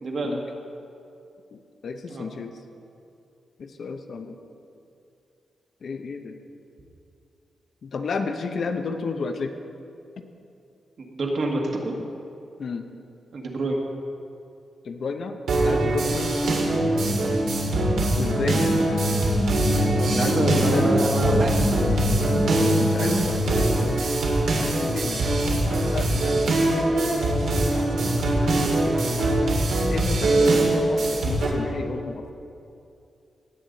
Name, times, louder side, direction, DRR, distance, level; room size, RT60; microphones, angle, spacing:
voice 1, 0.0-0.4 2.1-2.3 11.0-12.0 13.3-13.8 20.1-22.0 22.4-22.6, right 2 dB, 55° right, 0 dB, 1.6 m, -27 dB
voice 2, 1.5-2.6 3.6-4.4 5.8-6.4 7.8-9.5 12.6-12.8 14.8-16.4 18.1-18.8 19.9-21.0 22.5-24.0 24.8-25.3 25.7-26.7 27.9-28.2 29.9-32.3, left 4 dB, 55° left, 6 dB, 0.7 m, -32 dB
sound 1, 15.5-31.5, right 2 dB, 75° right, 2.2 m, -23 dB
nuxvox deep, 16.6-24.0, left 1 dB, 35° left, 1.1 m, -26 dB
17.0 x 8.1 x 4.0 m, 2.6 s
wide cardioid pair, 140°, 0 cm